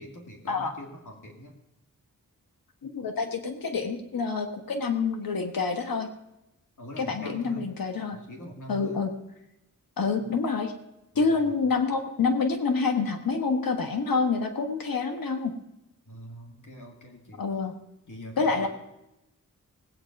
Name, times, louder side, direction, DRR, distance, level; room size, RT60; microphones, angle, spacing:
voice 1, 0.0-1.5 6.8-7.7 8.1-9.0 10.2-10.3 11.1-11.6 16.1-17.4 18.1-18.7, equal, 60° left, 1 dB, 2.3 m, -43 dB
voice 2, 2.8-6.1 7.0-8.2 8.7-9.1 10.0-10.7 11.1-15.5 17.4-17.7 18.4-18.7, left 4 dB, 85° left, 6 dB, 1.4 m, -27 dB
18.0 x 8.8 x 5.3 m, 0.90 s
wide cardioid pair, 75°, 34 cm